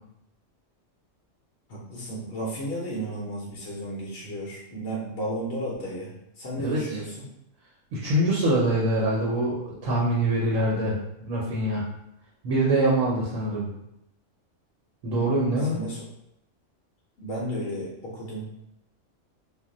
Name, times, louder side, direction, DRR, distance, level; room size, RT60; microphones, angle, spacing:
voice 1, 1.7-7.2 15.7-16.0 17.2-18.5, right 1 dB, 60° left, -4 dB, 0.8 m, -33 dB
voice 2, 6.6-7.0 7.9-11.9 12.4-13.7 15.0-15.8, right 1 dB, 75° right, -5 dB, 1.0 m, -24 dB
2.4 x 2.1 x 3.7 m, 0.81 s
omnidirectional pair, 1.4 m